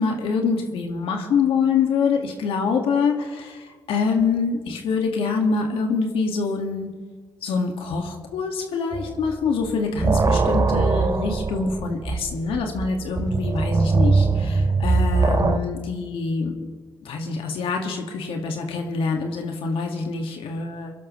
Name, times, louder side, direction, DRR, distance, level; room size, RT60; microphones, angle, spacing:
voice 1, 0.0-6.9 7.4-16.7 17.0-20.9, left 5 dB, 75° left, 3 dB, 2.0 m, -25 dB
sound 1, 8.9-9.4 9.7-15.6, right 3 dB, 35° right, 1.1 m, -21 dB
24.0 x 11.5 x 3.2 m, 1.4 s
supercardioid pair, 50°, 9 cm